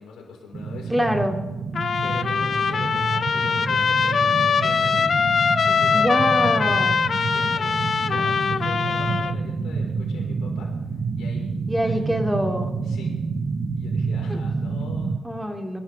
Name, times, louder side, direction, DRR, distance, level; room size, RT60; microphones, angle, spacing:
voice 1, 0.0-0.9 2.0-5.2 5.6-7.0 7.3-10.7 11.2-11.5 11.8-12.1 12.8-13.2 13.8-15.2, left 4 dB, 85° left, -1 dB, 5.4 m, -42 dB
sound 1, 0.5-15.2, right 4 dB, 50° right, 1.2 m, -28 dB
voice 2, 0.9-1.4 5.9-7.0 11.7-12.7 14.3-14.4 15.2-15.8, equal, 5° right, 4 dB, 3.0 m, -24 dB
Trumpet, 1.7-9.3, left 6 dB, 55° left, 0.9 m, -22 dB
25.0 x 12.5 x 3.8 m, 1.2 s
supercardioid pair, 60°, 0 cm